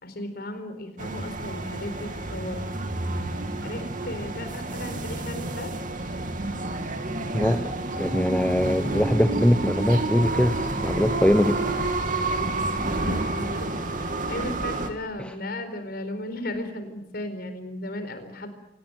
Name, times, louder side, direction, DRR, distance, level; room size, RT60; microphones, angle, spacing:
voice 1, 0.0-2.7 3.6-5.7 13.0-13.7 14.0-18.5, left 1 dB, 60° left, 9 dB, 4.3 m, -35 dB
sound 1, 1.0-14.9, right 2 dB, 50° right, 2.6 m, -29 dB
voice 2, 7.3-11.6 15.2-15.3, equal, 5° left, 9 dB, 0.8 m, -22 dB
25.5 x 19.0 x 9.2 m, 0.90 s
head